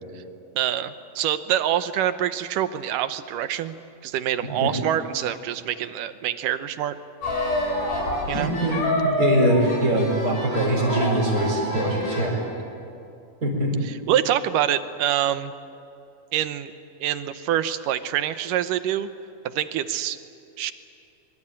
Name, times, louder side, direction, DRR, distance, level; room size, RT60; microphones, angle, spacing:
voice 1, 0.6-3.7 4.0-7.0 8.3-8.5 14.1-15.5 16.3-16.7 17.0-19.1 19.5-20.2 20.6-20.7, right 11 dB, 75° right, 11 dB, 2.3 m, -25 dB
voice 2, 4.4-4.7 8.3-12.3 13.4-13.8, right 1 dB, 25° right, -4 dB, 4.6 m, -23 dB
sound 1, 7.2-12.4, left 2 dB, 65° left, 7.3 m, -27 dB
25.0 x 23.0 x 8.8 m, 2.7 s
omnidirectional pair, 4.1 m